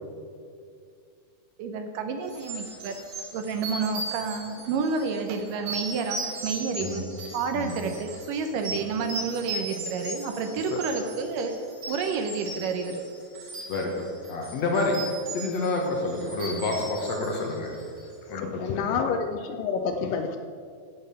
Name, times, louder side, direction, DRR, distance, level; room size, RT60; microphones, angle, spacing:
voice 1, 1.6-2.9 3.3-7.1 7.3-13.0, right 5 dB, 75° right, 6 dB, 2.2 m, -30 dB
sound 1, 2.3-18.1, right 2 dB, 50° right, 3.8 m, -38 dB
voice 2, 13.7-15.0 15.3-17.7 18.3-19.0, left 2 dB, 60° left, 0 dB, 2.0 m, -29 dB
voice 3, 18.3-20.4, left 5 dB, 80° left, 7 dB, 2.1 m, -28 dB
15.5 x 5.2 x 6.8 m, 2.3 s
omnidirectional pair, 4.2 m